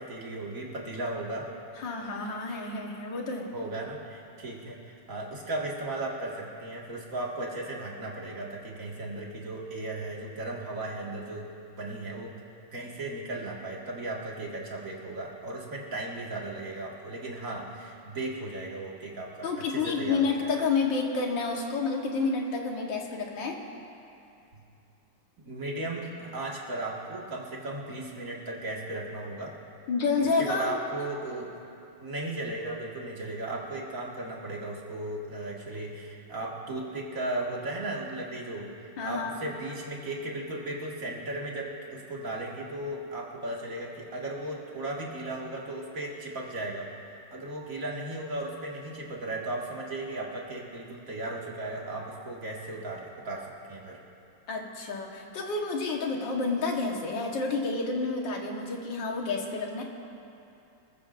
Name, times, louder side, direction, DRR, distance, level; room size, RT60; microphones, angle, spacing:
voice 1, 0.0-1.5 3.5-11.5 11.8-12.3 12.7-20.6 24.5-24.6 25.4-29.5 30.4-31.5 32.0-47.0 47.3-54.0, right 2 dB, 45° right, -3 dB, 2.3 m, -36 dB
voice 2, 1.8-3.5 19.4-23.6 29.9-30.8 39.0-39.4 54.5-59.8, left 4 dB, 75° left, 0 dB, 2.1 m, -29 dB
27.0 x 14.5 x 2.6 m, 2.7 s
omnidirectional pair, 2.0 m